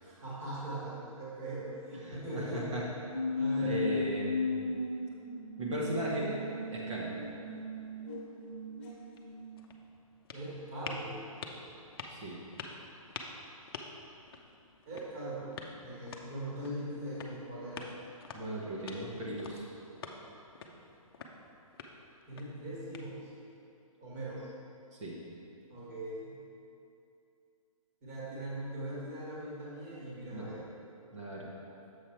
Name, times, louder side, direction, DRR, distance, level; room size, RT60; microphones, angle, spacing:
voice 1, 0.0-2.7 3.3-3.8 10.3-11.2 14.8-15.5 15.8-17.9 22.3-23.3 24.0-24.4 25.7-26.4 28.0-30.6, right 1 dB, 25° right, -7 dB, 1.7 m, -40 dB
voice 2, 1.9-2.8 3.6-4.5 5.6-6.3 6.7-7.2 12.1-12.4 18.3-19.6 25.0-25.1 30.3-30.5 31.1-31.5, right 1 dB, 55° right, -5 dB, 1.5 m, -36 dB
sound 1, 3.1-9.8, left 2 dB, 20° left, 1.4 m, -36 dB
sound 2, 9.1-23.5, left 4 dB, 40° left, 0.6 m, -48 dB
7.1 x 5.4 x 4.5 m, 2.7 s
hypercardioid pair, 160°, 18 cm